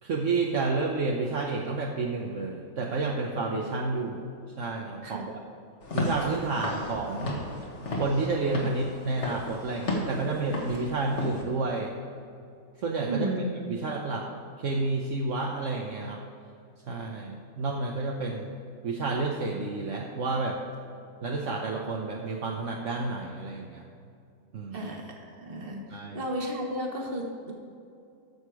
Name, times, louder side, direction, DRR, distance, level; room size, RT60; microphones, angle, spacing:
voice 1, 0.0-4.3 4.6-5.3 5.9-7.4 8.0-11.9 12.8-13.3 13.7-14.3 14.6-16.2 16.9-18.5 18.8-20.6 21.2-23.8 24.5-24.9 25.9-26.2, right 3 dB, 65° right, -1 dB, 1.2 m, -30 dB
Walk footsteps / Siren, 5.8-11.4, left 1 dB, 55° left, 1.8 m, -34 dB
voice 2, 13.1-13.4 13.9-14.0 24.7-27.5, right 1 dB, 40° right, 1 dB, 1.7 m, -33 dB
14.0 x 6.5 x 4.8 m, 2.5 s
omnidirectional pair, 1.4 m